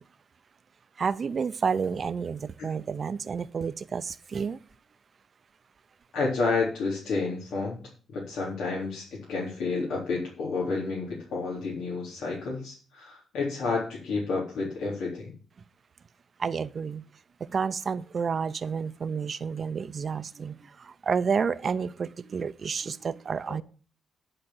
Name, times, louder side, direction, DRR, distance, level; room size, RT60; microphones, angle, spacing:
voice 1, 1.0-4.6 16.4-17.0 17.4-23.6, right 6 dB, 50° right, 14 dB, 0.7 m, -30 dB
voice 2, 6.1-7.8 8.1-15.3 23.5-23.6, left 3 dB, 85° left, -5 dB, 3.7 m, -30 dB
11.0 x 5.2 x 7.7 m, 0.39 s
cardioid pair, 90°, 0 cm